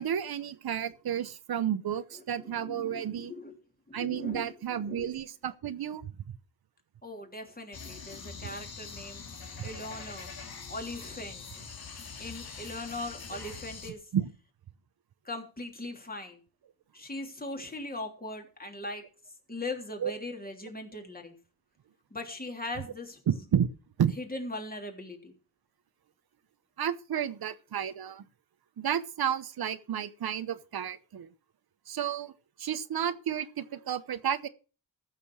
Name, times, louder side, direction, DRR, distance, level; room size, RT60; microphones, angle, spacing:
voice 1, 0.0-3.3 3.9-6.1 8.4-8.6 9.6-9.7 14.1-14.3 20.0-20.1 23.3-23.7 24.0-24.2 26.8-28.2 28.8-31.3 31.9-32.3 32.6-34.5, right 9 dB, 85° right, 0.9 m, -31 dB
voice 2, 2.4-3.5 3.9-4.5 4.8-5.1 7.0-10.3 10.7-11.6 12.2-14.1 15.2-16.4 16.9-19.0 19.5-21.4 22.1-23.2 24.2-25.3, left 2 dB, 25° left, 3.3 m, -40 dB
sound 1, 7.7-13.9, left 5 dB, 80° left, 2.3 m, -44 dB
14.5 x 6.7 x 6.3 m
cardioid pair, 75°, 36 cm